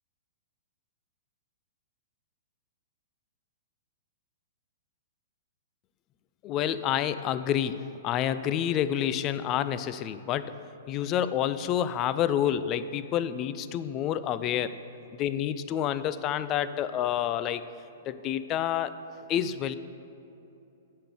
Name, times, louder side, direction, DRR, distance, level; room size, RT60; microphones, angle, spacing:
voice 1, 6.4-10.5 10.9-14.8 15.2-17.6 18.1-19.0 19.3-19.8, left 10 dB, 30° left, 13 dB, 0.4 m, -28 dB
8.5 x 5.9 x 6.9 m, 2.8 s
hypercardioid pair, 130°, 0 cm